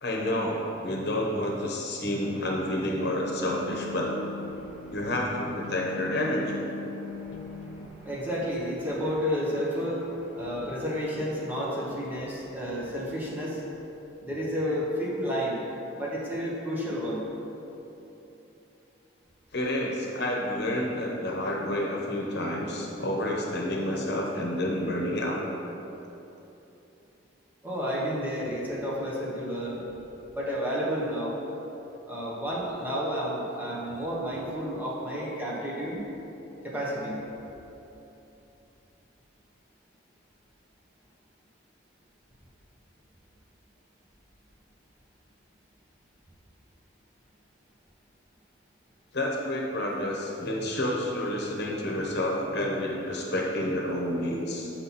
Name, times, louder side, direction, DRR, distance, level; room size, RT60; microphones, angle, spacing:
voice 1, 0.0-4.1 4.9-6.6 19.5-25.4 49.1-54.7, left 1 dB, 60° left, -1 dB, 1.0 m, -29 dB
sound 1, 2.7-7.9, left 3 dB, 75° left, 0.6 m, -40 dB
voice 2, 4.5-5.0 6.9-13.6 14.2-15.6 15.9-17.3 27.6-29.9 30.3-31.4 32.1-36.0 36.6-37.2, equal, 10° right, -6 dB, 1.2 m, -31 dB
7.6 x 5.9 x 4.2 m, 3.0 s
head